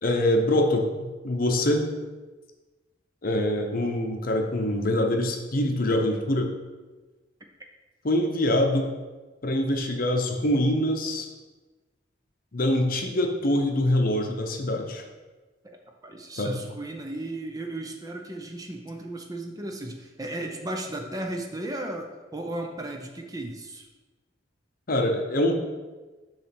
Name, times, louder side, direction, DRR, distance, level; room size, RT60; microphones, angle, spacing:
voice 1, 0.0-1.8 3.2-6.5 8.0-8.9 9.4-11.3 12.5-15.0 16.4-16.6 24.9-25.6, left 1 dB, 45° left, 3 dB, 0.7 m, -24 dB
voice 2, 15.6-23.9, right 1 dB, 20° right, 3 dB, 0.5 m, -35 dB
7.1 x 3.2 x 5.9 m, 1.2 s
head